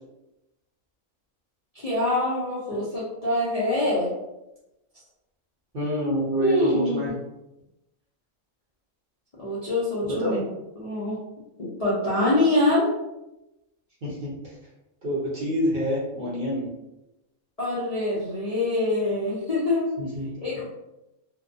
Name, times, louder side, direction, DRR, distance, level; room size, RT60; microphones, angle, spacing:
voice 1, 1.7-4.1 6.4-7.1 9.4-10.4 10.8-11.2 11.6-12.9 17.6-19.9 20.4-20.6, left 1 dB, 45° left, -9 dB, 0.5 m, -24 dB
voice 2, 5.7-7.1 10.0-10.4 14.0-14.6 15.0-16.7 20.0-20.3, equal, 50° right, -7 dB, 0.8 m, -27 dB
2.6 x 2.2 x 2.6 m, 0.94 s
omnidirectional pair, 1.5 m